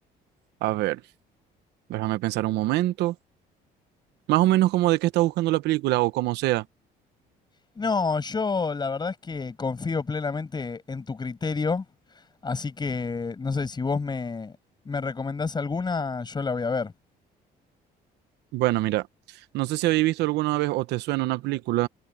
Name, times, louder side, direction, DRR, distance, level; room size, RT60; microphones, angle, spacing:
voice 1, 0.6-1.0 1.9-3.1 4.3-6.6 18.5-19.1 19.5-21.9, right 17 dB, 85° right, 1.1 m, -24 dB
voice 2, 7.8-11.9 12.4-14.5 14.9-16.9, left 4 dB, 25° left, 7.1 m, -28 dB
cardioid pair, 110°, 17 cm